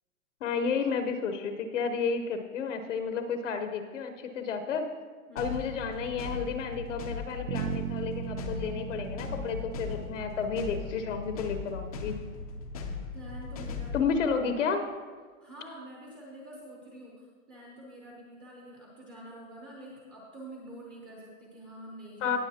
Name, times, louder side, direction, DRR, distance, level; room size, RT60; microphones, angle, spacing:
voice 1, 0.4-4.9 5.3-12.2 13.9-14.8 22.2-22.4, left 5 dB, 60° left, 6 dB, 1.0 m, -31 dB
voice 2, 5.3-5.8 13.1-14.1 15.4-17.1 17.5-22.4, right 1 dB, 10° right, -3 dB, 0.8 m, -46 dB
sound 1, 5.4-14.1, left 4 dB, 25° left, 0.6 m, -38 dB
Bass guitar, 7.5-11.5, right 10 dB, 85° right, 1.1 m, -38 dB
18.5 x 6.9 x 2.9 m, 1.5 s
hypercardioid pair, 170°, 42 cm